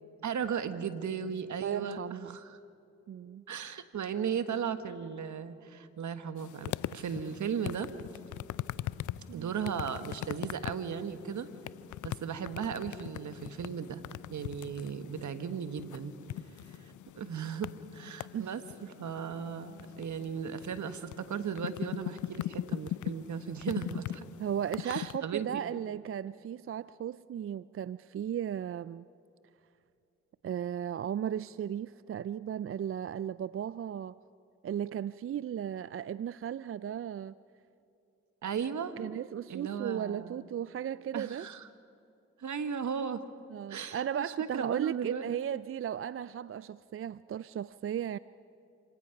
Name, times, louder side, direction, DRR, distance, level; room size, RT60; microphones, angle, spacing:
voice 1, 0.2-2.6 3.5-7.9 9.3-11.5 12.0-14.0 14.3-16.1 16.7-16.8 17.1-24.3 24.8-25.6 38.4-39.0 39.5-40.4 41.1-41.7 42.4-43.2 43.7-45.2, right 7 dB, 65° right, 1.4 m, -36 dB
voice 2, 1.6-2.4 3.1-3.4 9.3-9.5 18.3-18.5 24.4-29.0 30.4-34.2 34.6-37.4 39.0-41.5 43.5-48.2, right 9 dB, 45° right, 0.4 m, -36 dB
sound 1, 6.4-25.2, left 13 dB, 70° left, 0.5 m, -41 dB
27.5 x 18.0 x 5.9 m
supercardioid pair, 40°, 31 cm